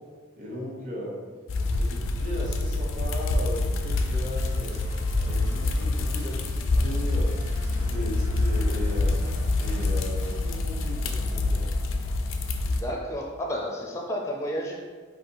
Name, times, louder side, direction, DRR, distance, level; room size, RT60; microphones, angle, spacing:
voice 1, 0.4-1.2 1.7-4.8 5.2-7.3 7.7-9.2 9.6-11.7, equal, 40° right, -5 dB, 1.1 m, -37 dB
sound 1, 1.5-12.8, left 2 dB, 75° left, 0.4 m, -26 dB
sound 2, 4.4-10.6, equal, 85° right, 1.2 m, -41 dB
sound 3, 7.1-12.5, equal, 65° right, 0.8 m, -46 dB
voice 2, 12.6-14.8, equal, 15° left, 0 dB, 0.5 m, -31 dB
4.1 x 2.8 x 4.6 m, 1.4 s
head